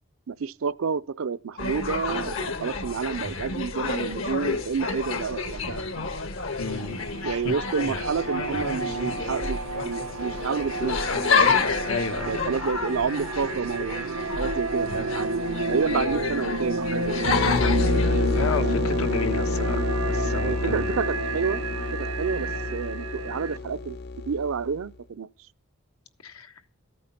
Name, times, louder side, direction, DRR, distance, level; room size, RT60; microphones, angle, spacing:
voice 1, 0.3-5.8 7.2-11.0 12.3-17.3 20.4-21.6 21.9-24.0 24.2-25.3, right 5 dB, 75° right, 0.5 m, -29 dB
sound 1, 1.6-18.6, left 4 dB, 70° left, 1.5 m, -29 dB
voice 2, 6.6-7.5 11.9-12.4 18.3-21.0 26.2-26.5, left 3 dB, 90° left, 1.4 m, -32 dB
sound 2, 6.7-23.6, right 2 dB, 90° right, 1.2 m, -31 dB
sound 3, 17.2-24.8, left 3 dB, 50° left, 0.5 m, -28 dB
14.0 x 8.6 x 5.8 m
head